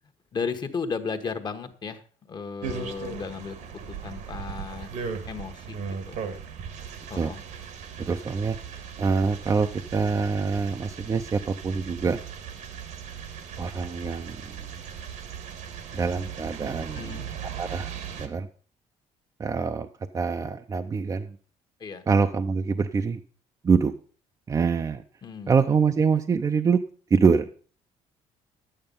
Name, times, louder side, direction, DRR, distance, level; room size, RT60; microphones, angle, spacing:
voice 1, 0.3-2.0 2.3-3.6 3.9-4.9 5.2-6.2 7.1-7.4 16.9-17.3 21.8-22.0 25.2-25.6, left 5 dB, 35° left, 8 dB, 1.3 m, -34 dB
sound 1, 2.6-18.3, right 7 dB, 80° right, 1.8 m, -38 dB
voice 2, 8.0-12.2 13.6-14.8 15.9-17.2 17.5-18.5 19.4-19.9 20.1-21.4 22.1-23.2 23.6-23.9 24.5-25.0 25.5-26.8 27.1-27.5, right 5 dB, 25° right, 6 dB, 0.6 m, -25 dB
11.0 x 8.9 x 5.4 m, 0.41 s
cardioid pair, 120°, 13 cm